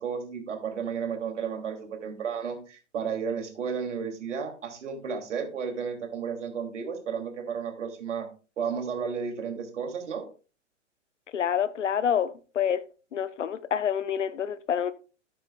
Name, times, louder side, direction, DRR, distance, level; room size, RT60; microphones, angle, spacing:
voice 1, 0.0-8.3 8.6-10.2, right 6 dB, 70° right, 2.9 m, -33 dB
voice 2, 11.3-12.8 13.1-14.9, left 8 dB, 75° left, 0.9 m, -27 dB
13.0 x 8.9 x 2.4 m
figure-of-eight pair, 105°, 37 cm